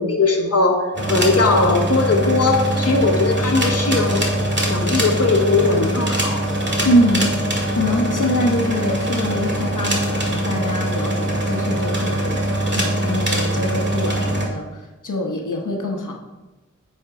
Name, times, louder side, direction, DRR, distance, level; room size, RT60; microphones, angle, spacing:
voice 1, 0.0-4.3 4.7-6.5, left 3 dB, 50° left, 2 dB, 1.0 m, -19 dB
sound 1, 0.9-14.5, right 1 dB, 35° right, 2.0 m, -22 dB
voice 2, 6.8-7.3 7.7-16.1, equal, 80° left, 1 dB, 1.1 m, -24 dB
8.5 x 4.5 x 4.8 m, 1.1 s
wide cardioid pair, 55°, 31 cm